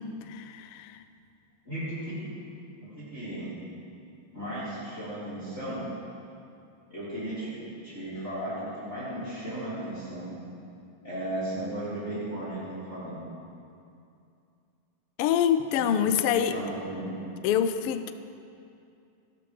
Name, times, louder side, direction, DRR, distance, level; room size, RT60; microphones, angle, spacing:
voice 1, 0.3-1.0 15.2-16.6 17.4-18.1, left 9 dB, 90° left, 9 dB, 1.2 m, -26 dB
voice 2, 1.6-2.2 2.8-3.6 4.3-5.8 6.9-10.4 11.0-13.3 15.9-17.2, right 1 dB, 20° left, -10 dB, 4.5 m, -35 dB
29.0 x 12.0 x 3.3 m, 2.5 s
omnidirectional pair, 3.4 m